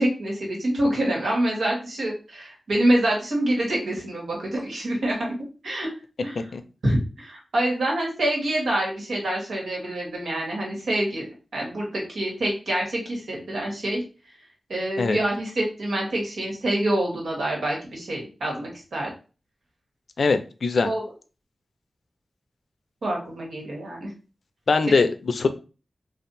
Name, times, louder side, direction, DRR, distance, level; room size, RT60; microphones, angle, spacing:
voice 1, 0.0-5.3 5.6-5.9 6.2-6.4 6.8-11.3 11.5-14.0 14.7-19.1 20.8-21.0 23.0-24.1 24.9-25.0, right 1 dB, 85° right, -2 dB, 1.6 m, -26 dB
voice 2, 20.2-20.9 24.7-25.5, left 4 dB, 70° left, 9 dB, 0.5 m, -22 dB
3.4 x 2.5 x 4.0 m, 0.34 s
wide cardioid pair, 85°, 0 cm